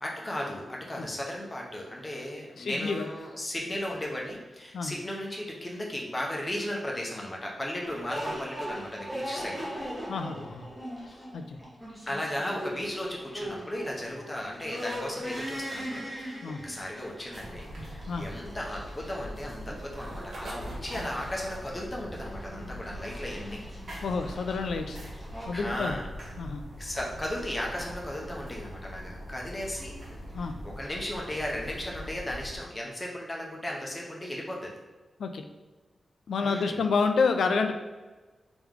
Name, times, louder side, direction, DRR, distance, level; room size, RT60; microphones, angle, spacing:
voice 1, 0.0-9.6 11.1-11.3 12.1-23.6 25.5-26.1 26.8-29.9 30.4-34.8 36.4-36.8, left 1 dB, 15° left, -2 dB, 0.7 m, -36 dB
voice 2, 2.6-3.1 4.7-5.0 10.1-10.7 11.3-11.6 16.4-16.6 18.1-18.3 24.0-25.0 25.5-26.0 26.4-26.6 30.3-30.6 35.2-35.4 36.3-37.7, left 4 dB, 80° left, 6 dB, 0.4 m, -29 dB
sound 1, 7.8-25.5, equal, 10° right, 1.0 m, -40 dB
sound 2, 16.6-21.6, right 1 dB, 85° right, 1.1 m, -43 dB
sound 3, 17.3-32.6, equal, 50° right, 1.3 m, -42 dB
3.4 x 3.0 x 3.6 m, 1.3 s
wide cardioid pair, 175°, 0 cm